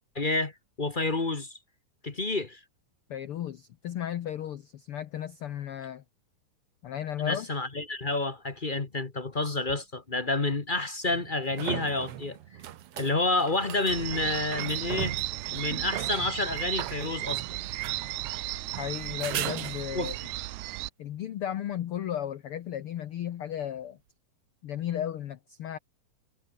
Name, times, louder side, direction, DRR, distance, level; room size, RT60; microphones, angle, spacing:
voice 1, 0.1-0.5 0.8-1.6 2.0-2.6 7.2-12.4 13.0-15.2 15.5-17.4 19.9-20.1, left 2 dB, 45° left, 0.6 m, -29 dB
voice 2, 3.1-6.0 6.8-7.5 18.8-20.2 21.0-24.0 24.6-25.8, left 10 dB, 85° left, 1.2 m, -34 dB
sound 1, 9.7-9.8 11.1-20.2 23.6-23.7, right 12 dB, 65° right, 1.5 m, -39 dB
sound 2, 13.9-20.9, right 19 dB, 80° right, 1.7 m, -35 dB
omnidirectional pair, 3.9 m